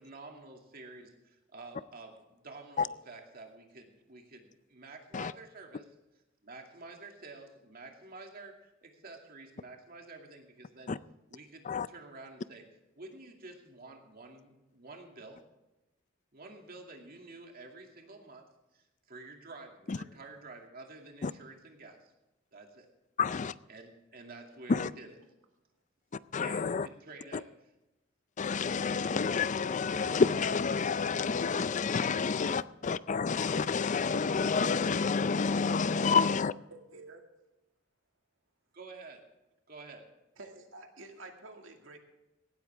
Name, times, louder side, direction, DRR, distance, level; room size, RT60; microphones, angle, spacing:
voice 1, 0.0-5.9 6.4-10.9 11.3-12.6 13.0-15.4 16.3-22.1 22.5-22.9 23.7-25.1 26.4-27.5 38.7-39.2 39.7-40.1, right 3 dB, 50° right, 3 dB, 2.4 m, -50 dB
voice 2, 23.2-23.5 24.7-24.9 26.3-26.9 28.4-36.5, left 5 dB, 40° left, 17 dB, 0.4 m, -29 dB
voice 3, 36.7-37.2 40.4-42.0, right 2 dB, 85° right, 3 dB, 2.2 m, -49 dB
17.5 x 13.0 x 3.5 m, 0.97 s
head